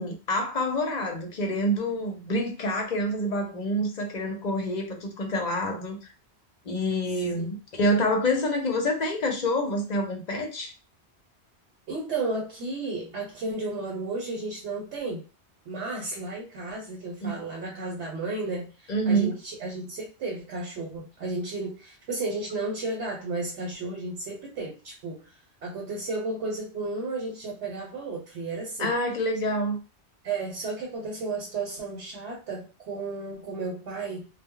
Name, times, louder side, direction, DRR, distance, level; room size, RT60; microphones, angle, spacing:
voice 1, 0.0-6.0 6.7-10.7 17.2-17.4 18.9-19.3 28.8-29.8, equal, 50° left, 0.6 m, -27 dB
voice 2, 11.9-15.2 15.7-25.3 25.6-28.9 30.2-34.3, right 3 dB, 90° right, 1.0 m, -33 dB
2.1 x 2.0 x 3.6 m
omnidirectional pair, 1.1 m